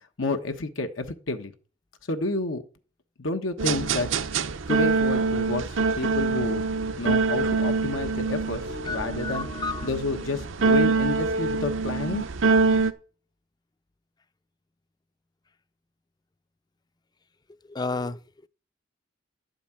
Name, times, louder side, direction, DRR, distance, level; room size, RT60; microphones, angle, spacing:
voice 1, 0.2-1.5 2.1-2.6 3.2-4.1 4.7-5.6 6.0-6.6 7.0-9.5 9.8-12.3, left 2 dB, 90° left, 1.2 m, -30 dB
sound 1, 3.6-12.9, right 4 dB, 80° right, 0.8 m, -25 dB
voice 2, 8.7-9.9 17.7-18.2, left 3 dB, 20° left, 0.4 m, -32 dB
11.5 x 5.2 x 8.7 m
head